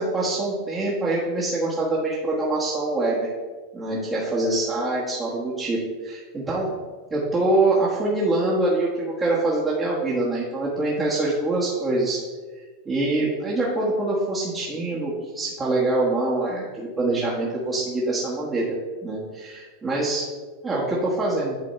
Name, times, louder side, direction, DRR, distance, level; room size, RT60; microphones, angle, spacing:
voice 1, 0.0-3.3 3.7-6.7 7.1-12.2 12.8-18.7 19.0-20.3 20.6-21.5, right 2 dB, 20° right, -7 dB, 1.4 m, -24 dB
9.7 x 3.4 x 4.3 m, 1.4 s
supercardioid pair, 135°, 0 cm